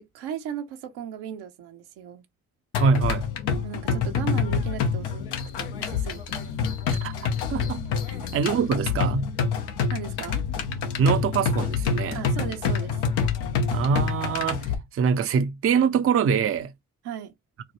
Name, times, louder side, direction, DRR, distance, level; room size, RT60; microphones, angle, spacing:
voice 1, 0.0-2.2 3.6-5.2 5.6-6.4 8.1-8.3 9.9-10.4 12.1-13.0 17.0-17.3, right 9 dB, 80° right, 0.9 m, -36 dB
sound 1, 2.7-14.7, left 6 dB, 80° left, 0.9 m, -27 dB
voice 2, 2.8-3.3 7.0-7.1 7.5-7.8 8.3-9.3 11.0-12.2 13.7-16.7, right 6 dB, 35° right, 0.5 m, -24 dB
4.4 x 2.1 x 3.0 m
hypercardioid pair, 50°, 39 cm